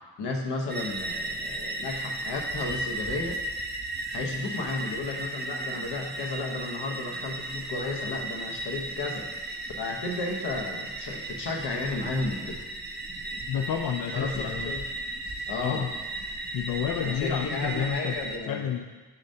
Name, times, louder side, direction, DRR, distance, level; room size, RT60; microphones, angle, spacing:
voice 1, 0.2-3.4 4.1-9.5 9.8-12.6 14.1-14.8 15.5-15.9 17.0-18.7, left 3 dB, 80° left, 1 dB, 1.1 m, -33 dB
sound 1, 0.7-18.4, right 2 dB, 25° right, 0.6 m, -35 dB
voice 2, 13.5-14.7 15.6-15.9 16.5-18.2 18.4-18.9, left 9 dB, 60° left, 3 dB, 0.5 m, -30 dB
7.0 x 6.5 x 2.8 m, 1.3 s
cardioid pair, 95°, 40 cm